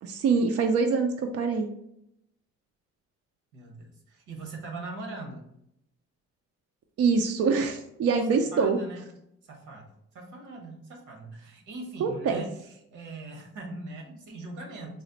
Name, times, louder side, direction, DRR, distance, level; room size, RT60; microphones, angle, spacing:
voice 1, 0.0-1.7 7.0-8.8 12.0-12.4, right 5 dB, 55° right, 4 dB, 0.4 m, -24 dB
voice 2, 3.5-5.5 8.3-9.1 9.4-15.0, right 2 dB, 85° right, 1 dB, 1.1 m, -41 dB
4.1 x 2.1 x 3.9 m, 0.78 s
cardioid pair, 90°, 30 cm